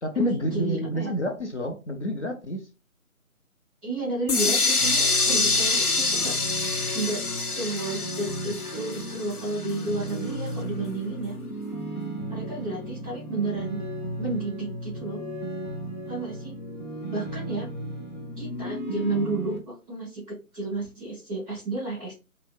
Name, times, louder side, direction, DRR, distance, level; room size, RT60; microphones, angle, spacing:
voice 1, 0.0-2.7, equal, 50° left, 0.6 m, -28 dB
voice 2, 0.5-1.1 3.8-6.3 6.9-11.4 12.3-13.8 14.2-15.2 16.1-16.5 17.1-17.7 18.4-22.1, right 3 dB, 5° right, 1.1 m, -32 dB
sound 1, 4.3-10.1, left 3 dB, 85° left, 0.8 m, -26 dB
sound 2, 4.8-19.6, right 1 dB, 30° left, 1.1 m, -35 dB
5.5 x 2.1 x 2.4 m
figure-of-eight pair, 155°, 44 cm